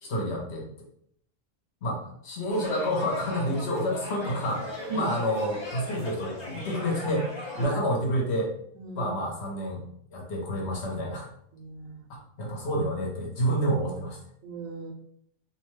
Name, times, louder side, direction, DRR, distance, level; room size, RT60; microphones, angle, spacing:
voice 1, 0.0-0.7 1.8-7.3 7.6-8.5 8.9-9.9 10.1-11.3 12.1-14.2, equal, 60° left, -2 dB, 1.0 m, -29 dB
sound 1, 2.5-7.7, left 1 dB, 25° left, 0.7 m, -38 dB
voice 2, 8.7-9.1 11.5-12.1 14.4-14.9, right 4 dB, 80° right, 2 dB, 1.0 m, -36 dB
2.7 x 2.2 x 3.1 m, 0.68 s
omnidirectional pair, 1.3 m